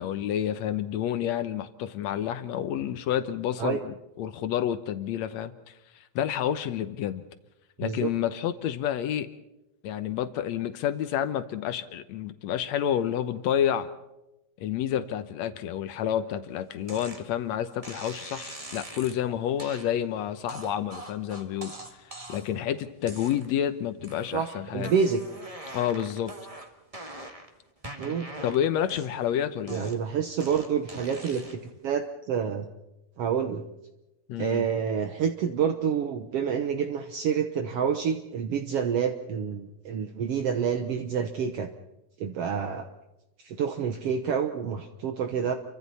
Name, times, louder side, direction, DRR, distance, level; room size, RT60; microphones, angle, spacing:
voice 1, 0.0-5.7 6.1-7.2 7.8-9.3 9.8-13.9 14.6-24.9 25.7-26.3 28.4-29.9 34.3-34.6, left 10 dB, 75° left, 11 dB, 1.6 m, -29 dB
sound 1, 16.9-17.2 17.8-19.2 19.6-19.9 20.5-22.6 23.0-23.6 24.0-24.5 24.8-27.5 27.8-29.3 29.7-31.7, right 1 dB, 30° right, 0.6 m, -42 dB
voice 2, 24.3-25.2 28.0-28.3 29.7-32.7 33.2-33.6 34.4-41.7 42.2-42.9 43.4-45.5, right 7 dB, 75° right, 6 dB, 1.4 m, -28 dB
30.0 x 24.5 x 4.2 m, 0.94 s
omnidirectional pair, 4.2 m